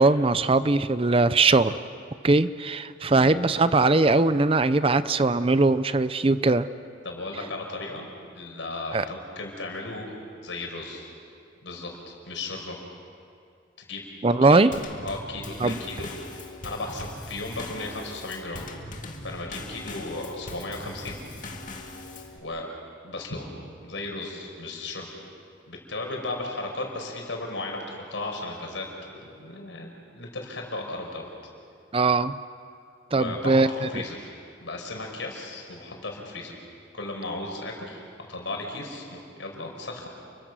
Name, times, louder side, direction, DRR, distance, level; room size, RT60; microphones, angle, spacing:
voice 1, 0.0-1.8 2.2-6.7 8.9-9.0 14.2-14.7 15.6-15.8 31.9-32.4 33.1-33.9, right 3 dB, 30° right, 14 dB, 0.6 m, -20 dB
voice 2, 7.0-10.1 10.4-11.1 11.6-12.8 13.9-14.0 14.5-16.1 16.6-18.6 19.2-21.2 22.4-22.7 23.0-23.5 23.8-25.1 25.7-31.2 33.1-34.3 34.6-36.6 36.9-40.1, left 2 dB, 85° left, 1 dB, 5.2 m, -35 dB
Drum kit / Snare drum / Bass drum, 14.7-22.4, left 2 dB, 45° left, 2.1 m, -40 dB
30.0 x 23.5 x 6.2 m, 2.3 s
head